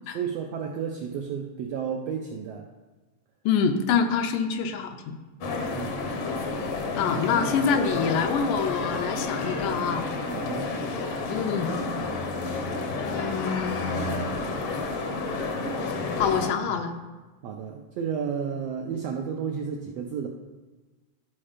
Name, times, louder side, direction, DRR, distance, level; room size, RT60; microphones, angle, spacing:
voice 1, 0.1-2.7 5.7-6.0 7.4-7.6 10.3-10.7 17.4-20.3, right 7 dB, 80° right, 2 dB, 1.4 m, -32 dB
voice 2, 3.5-5.2 7.0-10.1 11.3-11.7 13.0-14.1 16.2-16.9, left 6 dB, 90° left, 7 dB, 2.3 m, -26 dB
sound 1, 5.4-16.5, left 3 dB, 70° left, 1.3 m, -30 dB
12.0 x 4.3 x 5.0 m, 1.3 s
omnidirectional pair, 3.6 m